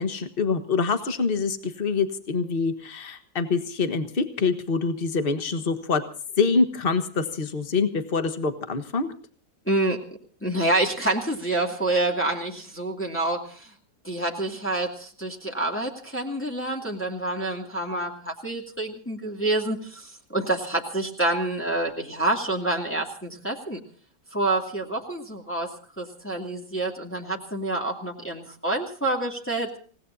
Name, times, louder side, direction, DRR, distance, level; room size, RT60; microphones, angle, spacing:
voice 1, 0.0-6.0 6.4-9.1, left 4 dB, 35° left, 8 dB, 1.6 m, -25 dB
voice 2, 9.7-10.0 10.4-13.7 14.0-23.8 24.3-29.7, right 2 dB, 5° left, 0 dB, 2.4 m, -27 dB
28.0 x 18.0 x 2.7 m, 0.43 s
omnidirectional pair, 1.7 m